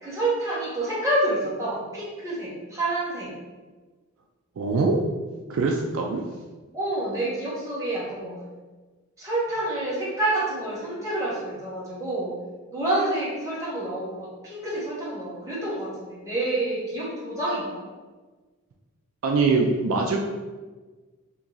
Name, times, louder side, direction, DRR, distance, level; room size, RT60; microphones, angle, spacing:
voice 1, 0.0-3.3 6.7-8.4 9.2-12.4 12.7-17.8, right 1 dB, 15° right, -8 dB, 1.0 m, -28 dB
voice 2, 4.6-5.0 5.5-6.2 19.2-20.2, right 4 dB, 65° right, 1 dB, 0.3 m, -23 dB
2.9 x 2.8 x 3.7 m, 1.3 s
head